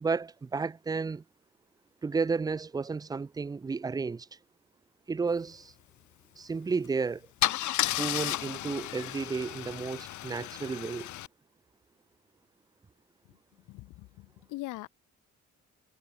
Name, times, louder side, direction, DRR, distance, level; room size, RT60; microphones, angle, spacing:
voice 1, 0.0-1.2 2.0-4.3 5.1-5.7 6.4-7.3 8.0-11.1, right 4 dB, 15° right, 0.3 m, -32 dB
Car / Engine starting / Idling, 6.7-6.9 7.4-11.3, left 14 dB, 75° left, 1.1 m, -33 dB
voice 2, 13.7-14.9, left 19 dB, 90° left, 0.6 m, -41 dB
cardioid pair, 90°, 30 cm